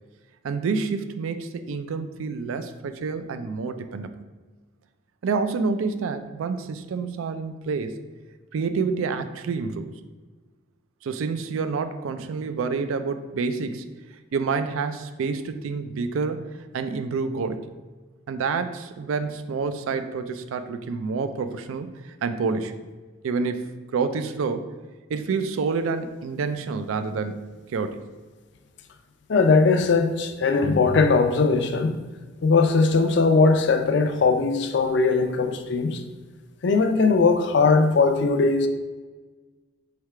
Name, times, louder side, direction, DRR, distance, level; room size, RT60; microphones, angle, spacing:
voice 1, 0.4-4.1 5.2-8.0 8.5-9.9 11.0-13.9 14.3-16.4 16.7-17.7 18.3-22.7 23.2-24.7 25.1-28.0, right 4 dB, 90° right, 0.4 m, -28 dB
voice 2, 29.3-32.0 32.4-36.0 36.6-38.7, left 4 dB, 60° left, 0.4 m, -20 dB
3.4 x 3.2 x 4.6 m
head